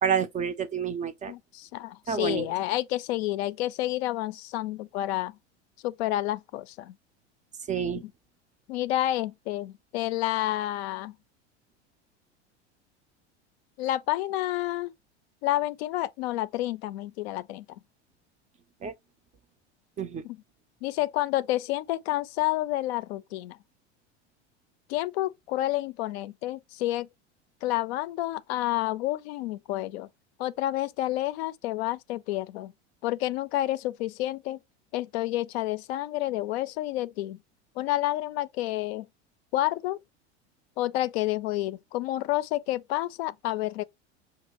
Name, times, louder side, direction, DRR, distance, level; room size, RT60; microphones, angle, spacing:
voice 1, 0.0-1.3 2.1-2.5 7.7-8.0 18.8-18.9 20.0-20.2, right 7 dB, 20° right, 0.4 m, -28 dB
voice 2, 1.3-5.4 5.8-6.9 8.0-8.1 8.7-11.1 13.8-14.9 15.4-17.7 20.2-20.4 20.8-23.6 24.9-27.1 27.6-30.1 30.4-32.7 33.0-34.6 34.9-37.4 37.8-39.1 39.5-40.0 40.8-43.8, left 15 dB, 65° left, 0.4 m, -29 dB
5.4 x 2.4 x 2.9 m
hypercardioid pair, 85°, 35 cm